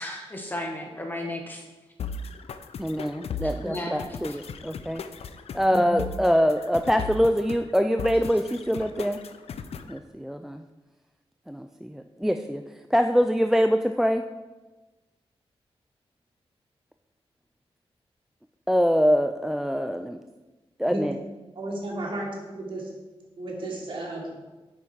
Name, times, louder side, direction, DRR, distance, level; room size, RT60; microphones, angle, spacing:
voice 1, 0.0-1.6 3.4-3.9 4.3-4.4 5.7-6.0, left 1 dB, 20° left, 1 dB, 1.6 m, -34 dB
sound 1, 2.0-10.0, left 4 dB, 85° left, 0.6 m, -37 dB
voice 2, 2.8-5.0 5.5-9.2 9.9-10.6 11.5-12.6 12.9-14.2 18.7-20.2 20.8-21.2, equal, 5° right, 7 dB, 0.4 m, -24 dB
voice 3, 21.5-22.9 23.4-24.3, right 1 dB, 55° right, -3 dB, 2.9 m, -33 dB
10.0 x 8.1 x 4.5 m, 1.2 s
wide cardioid pair, 130°, 10 cm